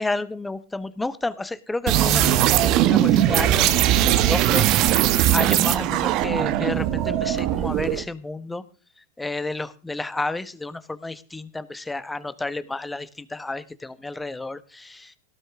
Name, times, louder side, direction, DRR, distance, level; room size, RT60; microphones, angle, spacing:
voice 1, 0.0-2.3 2.6-3.9 4.3-4.8 5.3-8.6 9.2-15.1, left 2 dB, 10° left, 15 dB, 1.2 m, -31 dB
sound 1, 1.9-8.0, right 12 dB, 50° right, 1.3 m, -20 dB
18.0 x 12.5 x 3.7 m, 0.35 s
hypercardioid pair, 100°, 0 cm